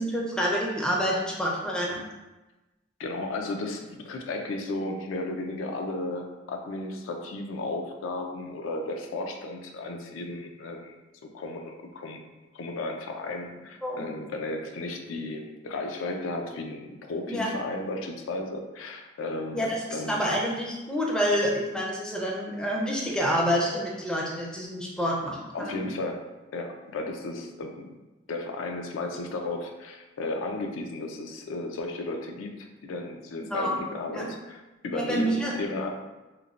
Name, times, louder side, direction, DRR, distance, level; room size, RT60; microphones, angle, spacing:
voice 1, 0.0-2.0 13.8-14.1 17.3-17.5 19.5-26.0 33.4-33.8 34.1-34.3 34.9-35.5, equal, 5° left, -3 dB, 0.4 m, -28 dB
voice 2, 3.0-11.0 11.3-12.2 12.5-20.3 25.5-26.3 26.5-27.9 28.3-35.9, left 2 dB, 85° left, 3 dB, 0.4 m, -34 dB
3.0 x 2.1 x 2.4 m, 1.1 s
head